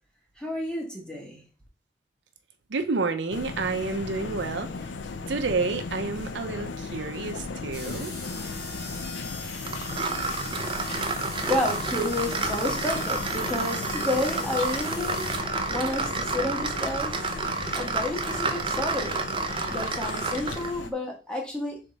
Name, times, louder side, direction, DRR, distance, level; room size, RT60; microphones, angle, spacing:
voice 1, 0.4-1.4 11.0-15.2 15.7-17.4 17.7-19.2 19.7-21.8, left 2 dB, 5° left, 1.1 m, -31 dB
voice 2, 2.7-4.7 5.3-8.1, right 4 dB, 70° right, 0.6 m, -29 dB
sound 1, 3.3-20.9, left 4 dB, 75° left, 0.5 m, -37 dB
sound 2, 7.7-15.4, left 2 dB, 60° left, 1.6 m, -40 dB
sound 3, 9.7-20.8, right 4 dB, 25° right, 0.4 m, -30 dB
3.6 x 3.4 x 3.9 m
head